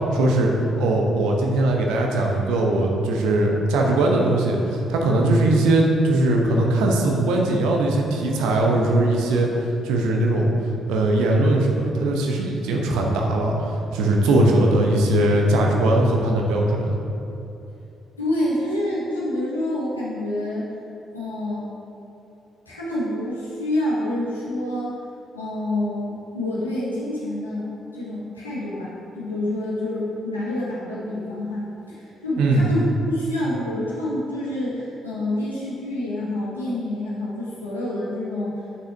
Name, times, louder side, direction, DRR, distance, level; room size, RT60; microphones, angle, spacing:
voice 1, 0.1-0.5 0.8-10.5 10.9-17.0 32.4-32.7, right 1 dB, 65° right, 0 dB, 0.9 m, -20 dB
voice 2, 18.2-20.7 21.1-21.7 22.6-24.9 25.3-27.7 27.9-38.6, left 1 dB, 85° left, -9 dB, 1.5 m, -27 dB
7.7 x 6.3 x 3.5 m, 2.8 s
figure-of-eight pair, 40°, 0 cm